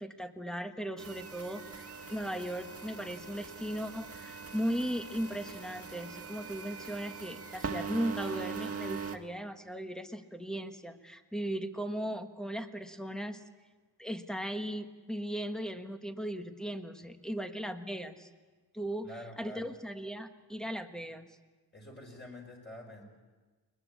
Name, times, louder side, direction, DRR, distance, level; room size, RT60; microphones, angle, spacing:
voice 1, 0.0-13.4 14.0-18.3 18.7-19.1 19.4-21.3, equal, ahead, 7 dB, 1.4 m, -37 dB
sound 1, 1.0-9.2, right 5 dB, 35° right, 1.7 m, -42 dB
voice 2, 19.0-19.7 21.7-23.0, left 1 dB, 25° left, -1 dB, 5.0 m, -47 dB
22.0 x 21.0 x 8.4 m, 1.3 s
wide cardioid pair, 115°, 40 cm